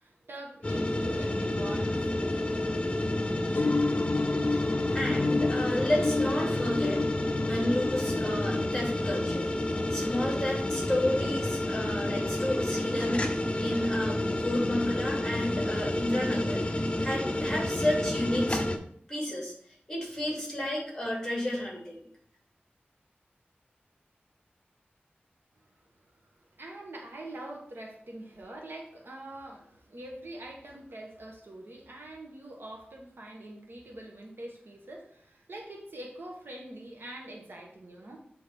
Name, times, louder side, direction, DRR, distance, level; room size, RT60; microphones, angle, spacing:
voice 1, 0.0-2.8 26.3-38.2, right 1 dB, 75° right, 1 dB, 1.2 m, -44 dB
sound 1, 0.6-18.8, left 1 dB, 30° left, 0.7 m, -30 dB
sound 2, 3.5-9.8, left 3 dB, 65° left, 0.4 m, -31 dB
voice 2, 4.9-7.0 7.4-9.5 9.9-18.6 19.1-19.5 19.9-22.0, left 1 dB, 15° left, -3 dB, 2.7 m, -31 dB
8.2 x 3.7 x 3.6 m, 0.63 s
wide cardioid pair, 75°, 4 cm